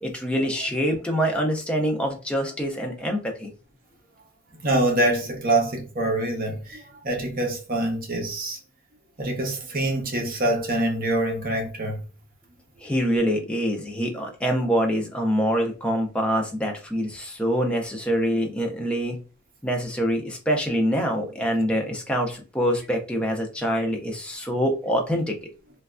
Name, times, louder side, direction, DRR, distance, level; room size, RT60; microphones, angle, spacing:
voice 1, 0.0-3.5 12.8-19.2 19.6-25.4, equal, 5° left, 0.4 m, -25 dB
voice 2, 4.6-8.6 9.2-12.0, right 1 dB, 40° right, 0.7 m, -25 dB
3.1 x 2.3 x 2.4 m
head